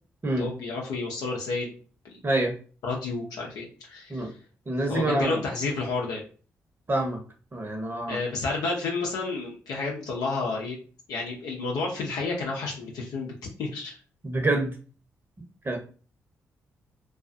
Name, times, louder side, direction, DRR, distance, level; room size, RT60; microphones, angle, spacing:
voice 1, 0.4-1.7 2.0-2.2 2.8-4.3 4.9-6.2 8.1-10.8 11.1-13.9, left 3 dB, 75° left, -1 dB, 0.6 m, -31 dB
voice 2, 2.2-2.5 4.1-4.3 4.7-5.4 6.9-7.2 7.5-8.2 14.2-14.7 15.6-15.8, right 2 dB, 35° right, 2 dB, 0.9 m, -26 dB
2.4 x 2.3 x 2.5 m, 0.38 s
hypercardioid pair, 45°, 7 cm